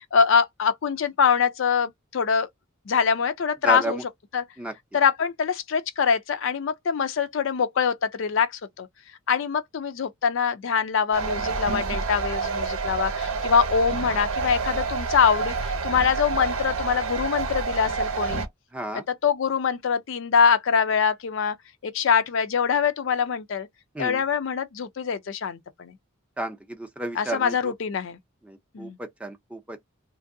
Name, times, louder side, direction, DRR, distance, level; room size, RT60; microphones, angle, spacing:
voice 1, 0.0-2.5 2.9-4.0 4.3-4.4 4.9-8.9 9.3-18.5 18.9-21.6 21.8-23.7 24.0-25.9 27.1-28.2 28.7-29.0, left 6 dB, 60° left, 0.4 m, -24 dB
voice 2, 3.6-4.0 4.6-4.7 18.7-19.0 24.0-24.2 26.4-27.5 28.5-29.9, right 2 dB, 5° right, 0.5 m, -32 dB
sound 1, 11.1-18.5, right 4 dB, 80° right, 0.7 m, -28 dB
3.0 x 2.6 x 2.5 m
head